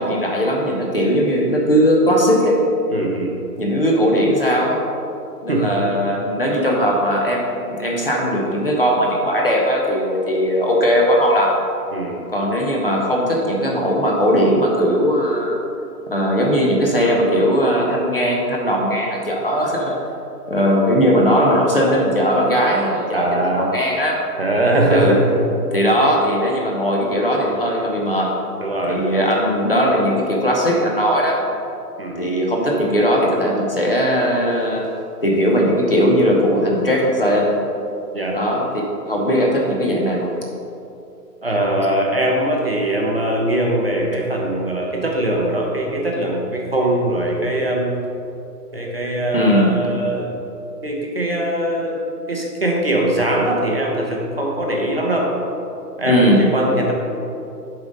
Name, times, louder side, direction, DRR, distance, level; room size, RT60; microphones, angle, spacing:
voice 1, 0.0-2.6 3.6-4.8 5.4-11.6 12.3-15.6 16.1-20.0 20.5-23.3 23.5-24.2 24.9-25.2 25.7-28.3 28.8-31.4 32.2-34.9 35.2-37.5 38.3-38.7 39.1-40.3 49.3-49.7 56.0-56.5, equal, 35° left, -2 dB, 0.7 m, -18 dB
voice 2, 2.9-3.3 5.5-5.7 11.9-12.2 23.1-23.7 24.4-25.4 28.6-29.0 32.0-32.2 38.1-38.4 41.4-48.0 48.7-50.3 50.8-52.0 52.3-55.3 56.0-56.9, right 1 dB, 40° right, -1 dB, 0.6 m, -21 dB
7.3 x 3.8 x 5.1 m, 2.7 s
hypercardioid pair, 180°, 49 cm